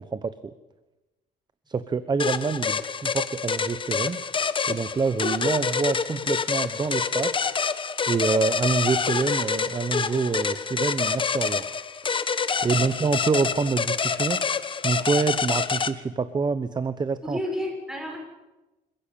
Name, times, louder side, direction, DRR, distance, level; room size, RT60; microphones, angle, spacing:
voice 1, 1.7-4.2 4.7-7.4 8.1-11.7 12.6-14.6 14.8-17.4, right 4 dB, 25° right, 13 dB, 1.0 m, -26 dB
sound 1, 2.2-15.9, left 5 dB, 30° left, 1.3 m, -27 dB
voice 2, 17.2-18.2, left 1 dB, 5° right, 2 dB, 6.8 m, -31 dB
27.0 x 16.0 x 8.7 m, 1.1 s
cardioid pair, 110°, 17 cm